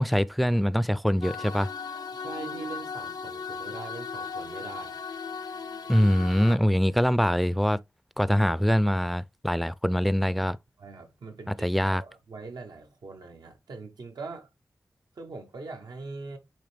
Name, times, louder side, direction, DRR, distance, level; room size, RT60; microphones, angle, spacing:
voice 1, 0.0-1.7 5.9-7.8 8.2-10.6 11.6-12.0, equal, ahead, 0.3 m, -23 dB
sound 1, 1.2-6.6, left 5 dB, 85° left, 0.6 m, -37 dB
voice 2, 2.2-5.0 10.8-14.5 15.1-16.4, right 3 dB, 85° right, 1.2 m, -42 dB
8.7 x 3.2 x 3.4 m
wide cardioid pair, 70°, 7 cm